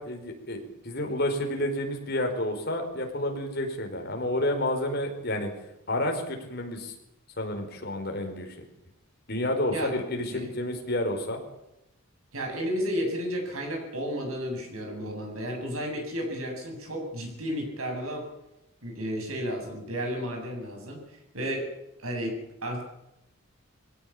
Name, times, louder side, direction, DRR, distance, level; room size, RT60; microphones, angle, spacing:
voice 1, 0.0-5.5 5.9-6.9 7.4-8.6 9.3-11.4, left 1 dB, 45° left, 3 dB, 4.9 m, -30 dB
voice 2, 12.3-18.3 18.8-21.7 22.0-22.8, equal, 80° right, 2 dB, 8.0 m, -32 dB
22.0 x 17.0 x 8.7 m, 0.85 s
head